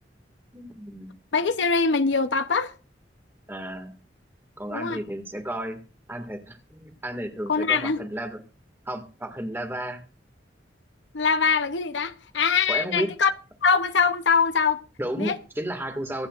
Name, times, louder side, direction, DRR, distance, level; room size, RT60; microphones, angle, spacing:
voice 1, 0.5-1.1 3.5-3.9 4.6-5.8 6.1-8.4 8.9-10.0 12.7-13.1 15.0-16.3, right 1 dB, 10° right, 1.9 m, -32 dB
voice 2, 1.3-2.7 4.7-5.0 7.5-8.0 11.1-13.3 13.6-14.8 15.2-15.4, left 5 dB, 80° left, 0.8 m, -23 dB
25.0 x 8.6 x 2.5 m
head